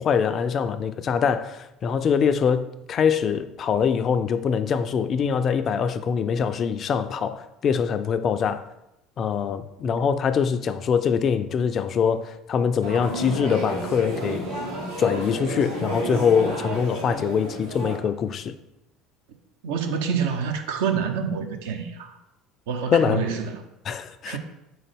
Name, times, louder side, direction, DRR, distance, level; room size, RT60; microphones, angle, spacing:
voice 1, 0.0-8.6 9.2-14.4 15.0-18.5 22.9-23.2 23.8-24.4, left 7 dB, 45° left, 0.3 m, -23 dB
sound 1, 12.8-18.0, right 2 dB, 90° right, 1.4 m, -31 dB
voice 2, 19.6-22.2 22.7-23.6 24.3-24.4, right 6 dB, 70° right, 0.5 m, -27 dB
3.9 x 3.9 x 3.4 m
figure-of-eight pair, 65°, 0 cm